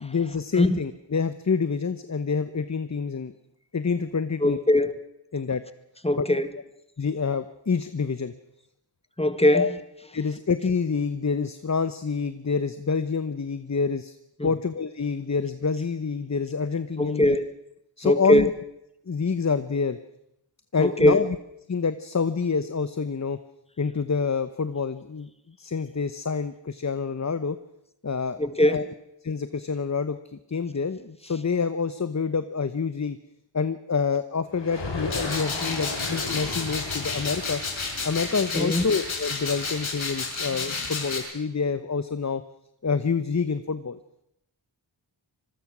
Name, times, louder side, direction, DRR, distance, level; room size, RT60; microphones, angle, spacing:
voice 1, 0.0-3.3 3.7-4.6 5.3-5.6 6.2-6.3 7.0-8.3 9.5-9.7 10.1-14.2 14.4-17.4 18.0-18.5 19.1-20.0 20.7-21.4 21.7-23.4 23.8-25.3 25.6-27.6 28.0-28.4 28.7-28.8 29.2-33.2 33.5-37.6 38.0-42.4 42.8-44.0, left 5 dB, 35° left, 12 dB, 1.0 m, -27 dB
voice 2, 4.4-4.9 6.0-6.5 9.2-9.7 14.4-14.5 17.0-17.5 18.0-18.5 20.8-21.3 28.4-28.9 38.5-38.8, left 1 dB, 15° left, 11 dB, 1.8 m, -21 dB
sound 1, 34.5-40.2, left 3 dB, 65° left, 4.8 m, -36 dB
sound 2, 35.1-41.2, left 4 dB, 85° left, 5.2 m, -31 dB
25.5 x 21.0 x 6.2 m, 0.79 s
wide cardioid pair, 65°, 46 cm